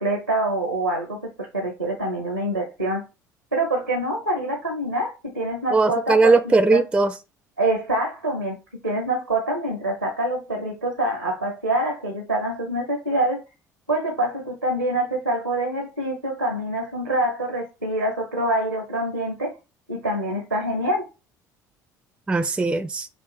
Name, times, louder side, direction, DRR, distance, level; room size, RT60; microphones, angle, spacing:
voice 1, 0.0-3.0 3.5-6.8 7.6-8.6 8.8-13.4 13.9-19.5 19.9-21.1, right 1 dB, 90° right, 0.7 m, -25 dB
voice 2, 5.7-7.1 22.3-23.1, right 3 dB, 10° right, 0.4 m, -19 dB
6.1 x 2.4 x 3.3 m
figure-of-eight pair, 60°, 9 cm